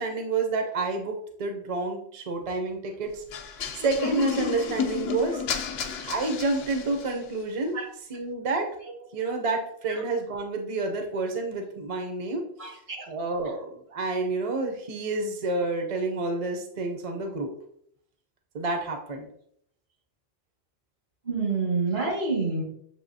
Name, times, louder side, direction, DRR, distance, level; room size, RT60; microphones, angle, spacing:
voice 1, 0.0-3.2 3.7-5.4 6.1-7.8 8.1-8.7 9.1-12.8 13.1-17.5 18.5-19.3, right 3 dB, 40° right, 4 dB, 0.6 m, -29 dB
sound 1, 3.3-7.2, left 6 dB, 80° left, 0.8 m, -32 dB
voice 2, 21.3-22.6, right 4 dB, 75° right, -2 dB, 1.9 m, -27 dB
7.1 x 2.7 x 2.7 m, 0.67 s
omnidirectional pair, 1.0 m